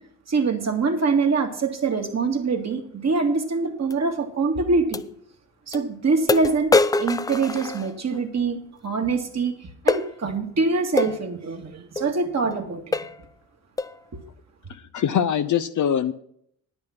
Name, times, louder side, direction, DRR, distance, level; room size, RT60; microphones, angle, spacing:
voice 1, 0.3-5.0 5.7-12.9 14.1-14.2, right 4 dB, 35° right, 4 dB, 2.0 m, -24 dB
sound 1, 3.9-4.0 4.9-5.1 5.7-5.8 6.3-8.2 9.9-10.1 11.0-11.2 12.0-12.1 12.5-12.6 12.9-13.2 13.8-14.0, left 3 dB, 10° left, 0.3 m, -24 dB
voice 2, 14.7-16.1, left 9 dB, 40° left, 11 dB, 0.7 m, -23 dB
10.5 x 8.9 x 5.9 m, 0.67 s
hypercardioid pair, 55°, 46 cm